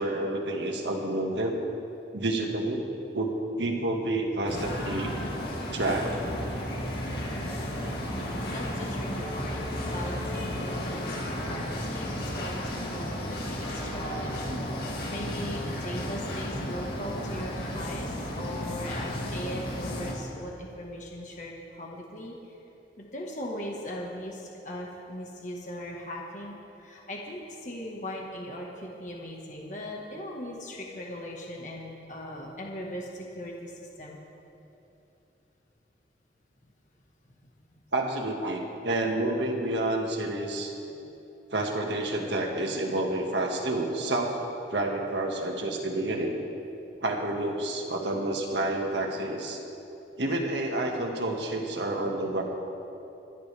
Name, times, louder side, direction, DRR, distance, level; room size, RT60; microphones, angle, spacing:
voice 1, 0.0-1.6 2.1-2.8 3.1-5.3 5.7-6.1 12.4-12.5 14.5-14.6 37.9-40.7 41.5-44.4 44.7-46.4 47.0-49.6 50.2-52.4, right 2 dB, 90° right, 1 dB, 1.8 m, -29 dB
sound 1, 4.5-20.1, left 1 dB, 60° left, 2.3 m, -33 dB
voice 2, 8.1-9.6 9.9-11.2 11.5-14.5 15.1-22.6 23.0-34.2 37.3-37.5 40.9-41.1, left 1 dB, 45° left, -1 dB, 1.5 m, -39 dB
27.0 x 10.5 x 3.5 m, 2.9 s
head